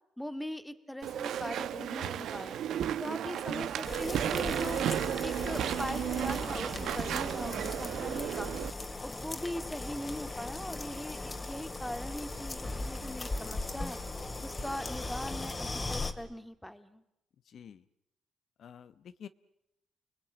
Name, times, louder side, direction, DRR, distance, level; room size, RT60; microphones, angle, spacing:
voice 1, 0.2-2.6 3.0-4.8 5.2-8.5 9.0-14.0 14.4-17.0, equal, 5° left, 10 dB, 2.0 m, -40 dB
Walk footsteps / Chatter / Squeak, 1.0-8.7, right 10 dB, 75° right, 1.1 m, -33 dB
sound 1, 3.8-16.1, left 2 dB, 25° left, 2.4 m, -38 dB
voice 2, 17.4-17.8 18.6-19.3, left 8 dB, 65° left, 13 dB, 0.9 m, -49 dB
30.0 x 20.0 x 8.7 m, 0.86 s
cardioid pair, 90°, 0 cm